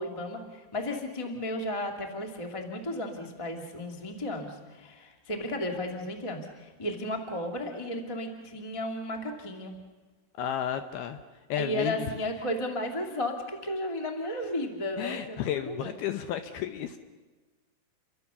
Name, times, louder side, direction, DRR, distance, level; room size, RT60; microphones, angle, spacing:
voice 1, 0.0-9.8 11.6-16.0, left 1 dB, 55° left, 3 dB, 0.3 m, -34 dB
voice 2, 10.4-11.2 11.5-12.2 15.0-17.0, left 10 dB, 75° left, 8 dB, 2.3 m, -32 dB
29.5 x 24.0 x 7.0 m, 1.3 s
omnidirectional pair, 5.5 m